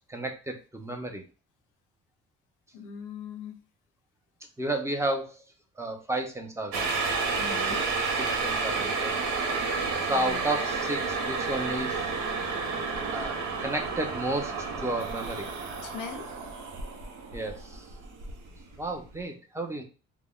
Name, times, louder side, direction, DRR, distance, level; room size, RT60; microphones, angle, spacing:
voice 1, 0.1-1.2 4.6-5.4 5.8-7.2 7.7-7.8 8.2-9.1 10.1-12.0 13.1-15.5 17.3-17.9 18.8-19.8, right 1 dB, 10° right, 4 dB, 0.6 m, -32 dB
voice 2, 2.7-3.6 7.4-7.8 10.1-10.5 15.8-16.3, left 5 dB, 90° left, 7 dB, 0.6 m, -40 dB
sound 1, 6.7-18.8 19.1-19.2, right 4 dB, 80° right, 0.6 m, -31 dB
3.4 x 2.0 x 2.3 m, 0.34 s
cardioid pair, 90°, 30 cm